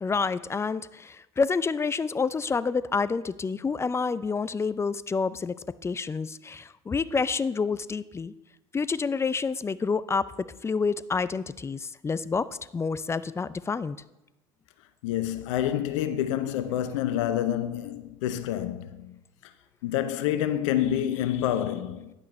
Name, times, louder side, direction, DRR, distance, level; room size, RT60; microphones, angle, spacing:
voice 1, 0.0-5.5 5.8-8.3 8.7-14.0, left 5 dB, 15° left, 0.4 m, -28 dB
voice 2, 15.0-19.2 19.4-19.5 19.8-22.1, left 11 dB, 70° left, 0.5 m, -28 dB
10.5 x 8.4 x 3.2 m
hypercardioid pair, 70°, 16 cm